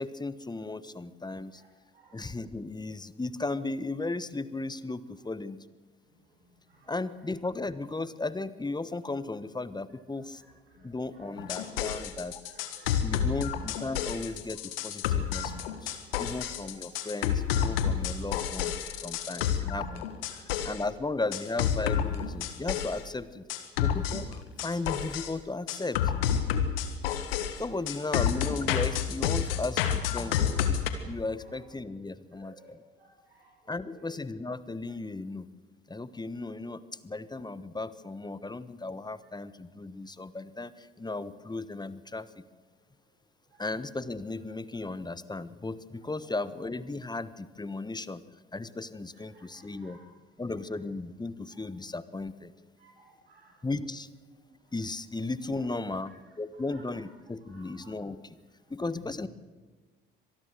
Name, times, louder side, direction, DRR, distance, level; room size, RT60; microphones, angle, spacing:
voice 1, 0.0-1.6 2.1-5.6 6.9-10.4 10.8-12.4 13.0-20.1 20.3-23.4 23.8-26.0 27.6-30.8 31.1-32.8 33.7-35.5 35.9-42.4 43.6-48.2 48.5-50.0 50.4-52.5 53.6-54.1 54.7-58.4 58.7-59.3, left 3 dB, 15° left, 16 dB, 1.2 m, -36 dB
voice 2, 1.9-2.3 6.3-6.9 10.7-11.4 11.9-13.4 15.2-15.8 16.7-16.8 18.9-19.7 20.3-20.7 29.4-29.6 30.2-30.5 31.2-31.3 32.4-32.7 33.0-33.5 33.9-34.0 43.5-43.6 49.1-50.0 52.8-53.6 54.6-54.7 56.5-56.8 57.5-57.9, right 3 dB, 85° right, -1 dB, 6.4 m, -58 dB
sound 1, 11.4-20.8 21.3-23.0 23.5-25.3 25.7-30.9, left 9 dB, 75° left, 1.6 m, -29 dB
25.0 x 19.5 x 6.7 m, 1.3 s
figure-of-eight pair, 50°, 29 cm